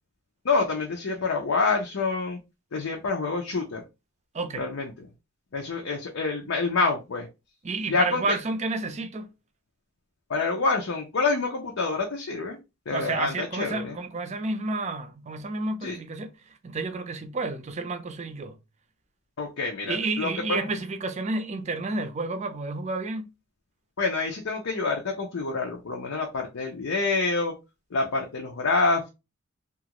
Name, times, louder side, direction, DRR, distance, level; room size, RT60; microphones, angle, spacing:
voice 1, 0.4-2.4 2.7-3.8 4.6-4.9 5.5-7.3 7.9-8.2 10.3-12.6 12.9-14.0 15.8-16.0 19.4-20.7 24.0-27.5 27.9-29.1, left 3 dB, 85° left, 0.6 m, -27 dB
voice 2, 4.3-4.7 7.6-9.3 12.9-18.6 19.9-23.3, right 3 dB, 35° right, 0.5 m, -30 dB
2.9 x 2.4 x 2.9 m
head